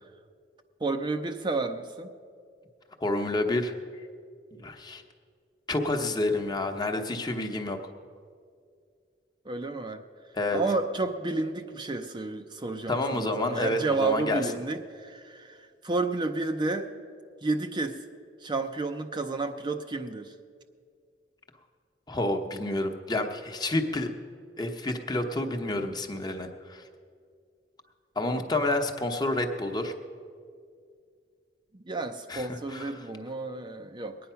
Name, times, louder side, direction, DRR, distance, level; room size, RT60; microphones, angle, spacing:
voice 1, 0.8-2.1 9.5-10.0 10.5-16.9 17.4-18.0 18.4-20.3 28.3-28.4 31.7-34.2, right 3 dB, 25° right, 6 dB, 0.6 m, -31 dB
voice 2, 3.0-3.7 4.5-5.0 5.7-7.8 10.3-10.6 12.9-14.4 22.1-24.1 24.6-26.8 28.2-29.9 32.3-33.0, left 2 dB, 25° left, 4 dB, 1.0 m, -29 dB
21.0 x 9.4 x 5.7 m, 2.2 s
head